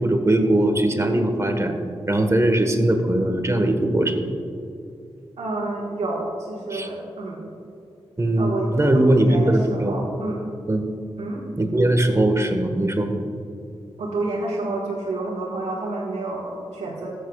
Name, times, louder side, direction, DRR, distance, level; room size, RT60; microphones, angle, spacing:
voice 1, 0.0-1.7 2.1-4.4 6.7-6.9 8.2-10.0 10.7-10.8 11.6-13.1, right 1 dB, 25° right, 5 dB, 1.3 m, -20 dB
voice 2, 5.4-7.5 8.4-10.4 11.2-11.4 14.0-17.2, right 2 dB, 80° right, -5 dB, 1.4 m, -29 dB
14.0 x 8.4 x 2.4 m, 2.6 s
cardioid pair, 45°, 11 cm